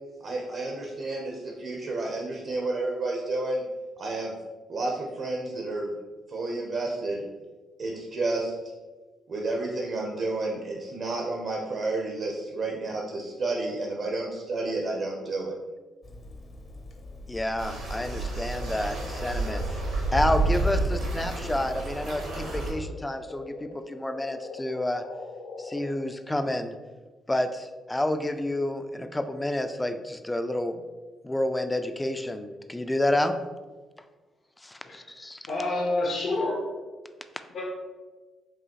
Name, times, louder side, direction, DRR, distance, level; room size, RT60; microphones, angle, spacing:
voice 1, 0.2-3.6 4.0-4.3 4.7-5.9 6.3-7.2 7.8-8.5 9.3-15.5, right 2 dB, 55° right, -1 dB, 0.7 m, -31 dB
Water tap faucet / Sink (filling or washing), 16.0-21.5, left 4 dB, 40° left, 0.7 m, -43 dB
voice 2, 17.3-19.6 20.1-25.0 25.6-26.7 27.3-30.8 31.2-33.4 34.6-35.4, left 1 dB, 15° left, 9 dB, 0.3 m, -29 dB
sound 1, 17.6-22.7, right 2 dB, 85° right, 1.3 m, -29 dB
sound 2, 18.5-26.2, left 3 dB, 85° left, 0.4 m, -43 dB
voice 3, 34.8-35.2 35.5-36.7 37.5-37.6, left 2 dB, 70° left, -2 dB, 0.9 m, -28 dB
4.8 x 2.7 x 3.0 m, 1.3 s
cardioid pair, 90°, 0 cm